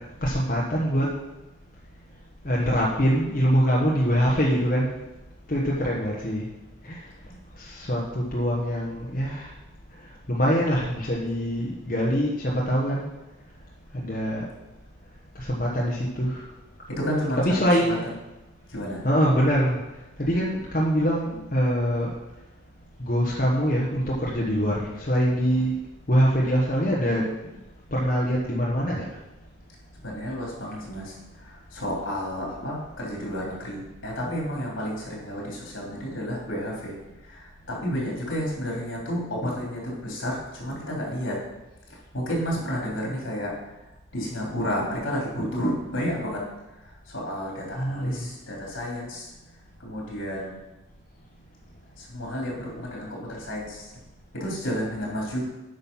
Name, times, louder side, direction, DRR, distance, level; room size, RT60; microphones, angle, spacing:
voice 1, 0.2-1.1 2.4-4.9 5.5-6.5 6.8-7.0 7.6-9.5 10.3-13.1 13.9-14.4 15.4-16.4 17.4-18.0 19.0-19.8 20.2-22.1 23.0-25.7 26.1-27.3 27.9-29.1 47.8-48.3, equal, 40° left, -4 dB, 1.2 m, -24 dB
voice 2, 16.9-17.5 17.8-18.1 18.7-19.0 30.0-37.0 37.2-41.4 41.9-43.6 44.1-46.4 46.8-49.3 49.8-50.6 52.0-53.9 54.3-55.5, equal, 75° left, -3 dB, 3.7 m, -31 dB
9.0 x 5.8 x 5.6 m, 1.0 s
head